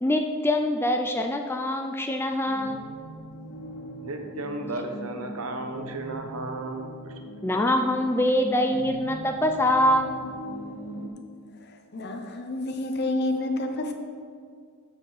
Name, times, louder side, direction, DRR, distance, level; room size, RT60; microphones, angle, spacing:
voice 1, 0.0-2.8 7.4-10.1, left 1 dB, 10° left, 4 dB, 0.3 m, -24 dB
sound 1, 2.4-11.1, equal, 75° left, 1.2 m, -40 dB
voice 2, 4.0-7.1, right 2 dB, 80° right, 5 dB, 1.0 m, -34 dB
voice 3, 11.6-13.9, left 2 dB, 50° left, 4 dB, 0.9 m, -29 dB
13.5 x 5.2 x 4.1 m, 2.1 s
head